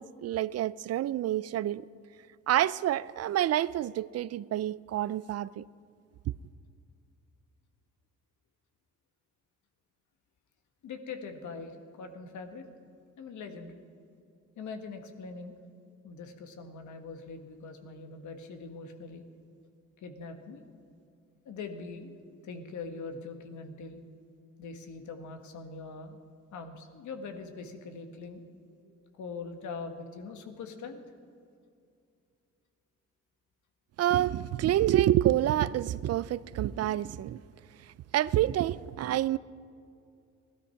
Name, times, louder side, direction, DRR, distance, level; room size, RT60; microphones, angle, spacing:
voice 1, 0.0-1.9 2.5-5.7 34.0-37.4 38.1-39.4, right 13 dB, 55° right, 0.4 m, -28 dB
voice 2, 10.8-12.6 13.2-13.8 14.6-15.6 16.0-19.2 20.0-20.6 21.4-24.0 24.6-26.2 26.5-28.4 28.9-31.0, left 4 dB, 75° left, 1.6 m, -42 dB
16.5 x 12.5 x 5.8 m
cardioid pair, 90°, 30 cm